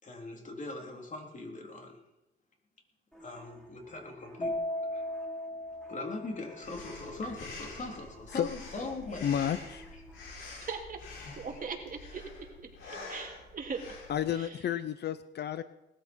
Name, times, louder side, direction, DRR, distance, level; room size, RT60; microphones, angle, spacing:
voice 1, 0.0-2.0 3.2-4.5 4.9-5.0 5.9-9.5 10.1-10.3, left 2 dB, 40° left, 1 dB, 3.8 m, -41 dB
sound 1, 3.1-10.3, right 1 dB, ahead, 6.5 m, -56 dB
Keyboard (musical), 4.4-6.9, left 1 dB, 20° left, 1.6 m, -37 dB
Breathing, 6.6-14.2, left 3 dB, 75° left, 7.4 m, -47 dB
voice 2, 9.2-9.9 14.1-15.6, left 10 dB, 60° left, 13 dB, 0.7 m, -31 dB
voice 3, 10.6-11.0 11.4-12.5 12.8-14.0 14.3-14.5, right 5 dB, 45° right, 2 dB, 3.1 m, -40 dB
19.5 x 13.5 x 4.7 m, 0.94 s
cardioid pair, 90°, 20 cm